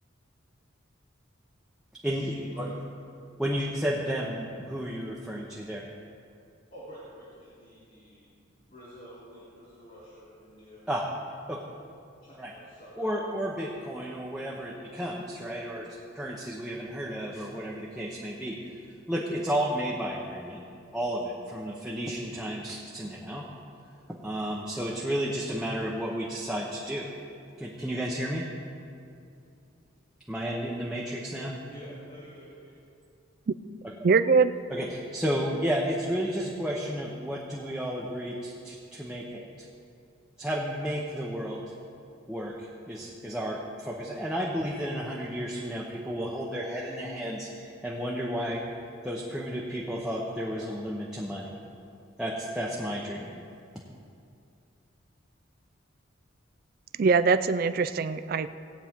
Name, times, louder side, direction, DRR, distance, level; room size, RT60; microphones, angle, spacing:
voice 1, 2.1-2.7 6.7-10.9 12.2-13.7 31.7-32.5, equal, 45° left, -10 dB, 3.1 m, -49 dB
voice 2, 3.4-5.8 10.9-11.0 11.5-11.6 12.4-12.5 13.0-15.9 16.1-18.6 19.1-20.6 20.9-23.5 24.1-27.1 27.6-28.4 30.3-31.6 34.7-39.7 40.4-41.6 42.3-48.6 49.0-51.6 52.2-53.3, equal, 5° right, -4 dB, 0.8 m, -32 dB
voice 3, 34.0-34.6 57.0-58.5, right 4 dB, 45° right, 12 dB, 0.3 m, -22 dB
18.0 x 8.7 x 3.6 m, 2.5 s
head